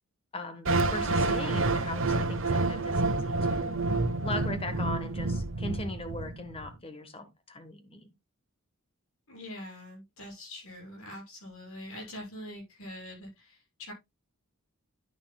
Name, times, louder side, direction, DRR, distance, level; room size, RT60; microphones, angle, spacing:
voice 1, 0.3-3.7 4.2-8.1, left 2 dB, 25° left, 1.3 m, -39 dB
sound 1, 0.6-6.7, right 2 dB, 65° right, 0.9 m, -28 dB
voice 2, 9.3-13.9, left 1 dB, 80° left, 7.1 m, -44 dB
10.5 x 9.6 x 2.3 m
head